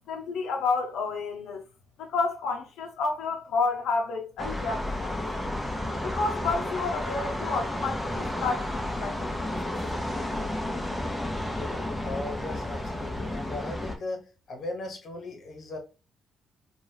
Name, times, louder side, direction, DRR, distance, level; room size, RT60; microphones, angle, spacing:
voice 1, 0.1-1.6 2.0-5.2 6.0-9.6, left 4 dB, 85° left, 0.6 m, -30 dB
sound 1, 4.4-14.0, left 1 dB, 5° left, 0.8 m, -32 dB
voice 2, 12.0-15.8, left 2 dB, 50° left, 1.0 m, -37 dB
3.0 x 2.4 x 3.3 m
cardioid pair, 90°, 0 cm